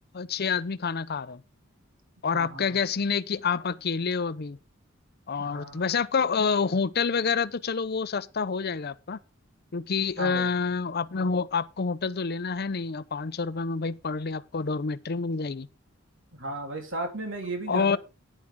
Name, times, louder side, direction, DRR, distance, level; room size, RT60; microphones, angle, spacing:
voice 1, 0.1-1.4 2.2-4.6 5.3-9.2 9.7-15.7 17.7-18.0, left 5 dB, 50° left, 0.6 m, -28 dB
voice 2, 2.3-2.8 5.4-5.8 10.2-10.5 16.3-18.0, right 2 dB, 65° right, 3.4 m, -35 dB
11.5 x 10.0 x 3.7 m
head